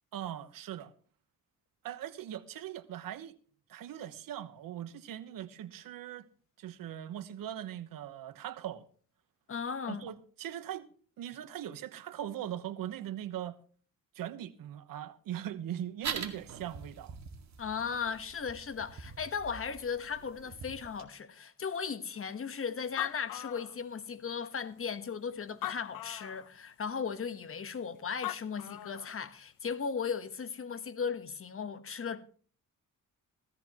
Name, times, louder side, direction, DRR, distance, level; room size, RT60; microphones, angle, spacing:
voice 1, 0.1-0.9 1.8-3.3 3.7-6.3 6.6-8.9 9.9-10.9 11.2-13.6 14.1-17.2, right 11 dB, 85° right, 1.1 m, -40 dB
voice 2, 9.5-10.0 17.6-32.2, left 6 dB, 40° left, 1.2 m, -37 dB
sound 1, 16.0-21.0, right 6 dB, 55° right, 2.1 m, -43 dB
Animal, 22.5-22.6 22.8-24.2 24.9-25.0 25.5-26.5 27.9-28.0 28.2-29.2, left 14 dB, 80° left, 0.8 m, -40 dB
16.0 x 14.0 x 3.0 m
cardioid pair, 105°, 33 cm